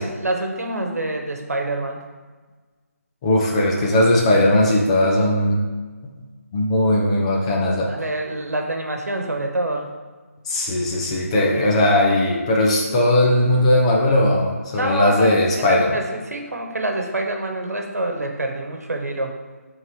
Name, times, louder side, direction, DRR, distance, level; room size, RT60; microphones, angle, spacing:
voice 1, 0.0-2.1 7.9-9.9 11.3-11.7 14.7-19.4, right 1 dB, 85° right, 3 dB, 1.1 m, -26 dB
voice 2, 3.2-5.6 6.5-7.9 10.5-16.0, left 1 dB, 25° left, -2 dB, 0.8 m, -18 dB
5.8 x 3.8 x 4.6 m, 1.4 s
figure-of-eight pair, 160°, 8 cm